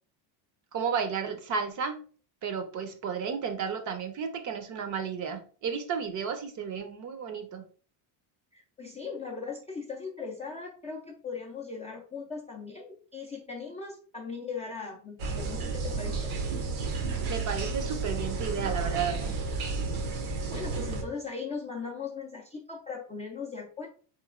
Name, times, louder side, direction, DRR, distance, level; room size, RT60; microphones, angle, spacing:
voice 1, 0.7-2.0 2.4-7.6 17.3-19.4, right 6 dB, 40° right, 7 dB, 0.6 m, -33 dB
voice 2, 8.5-16.3 20.3-23.9, left 5 dB, 15° left, -3 dB, 0.3 m, -39 dB
sound 1, 15.2-21.0, right 4 dB, 75° right, 0.9 m, -32 dB
3.8 x 3.1 x 2.4 m, 0.41 s
cardioid pair, 130°, 48 cm